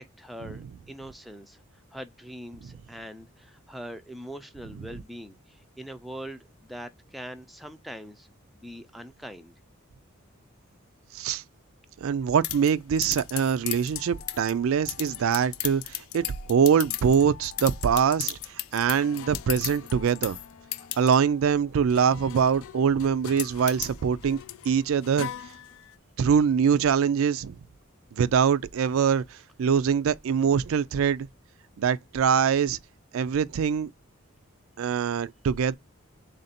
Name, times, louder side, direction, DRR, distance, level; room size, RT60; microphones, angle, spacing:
voice 1, 0.0-1.6 1.9-8.3 8.5-9.5, equal, ahead, 0.4 m, -42 dB
voice 2, 12.0-18.4 18.7-20.4 21.0-24.4 24.6-25.3 26.2-27.6 28.1-31.3 31.8-32.8 33.1-33.9 34.8-35.8, right 7 dB, 70° right, 0.3 m, -23 dB
sound 1, 12.4-26.0, left 14 dB, 75° left, 0.3 m, -37 dB
3.7 x 2.5 x 4.1 m
head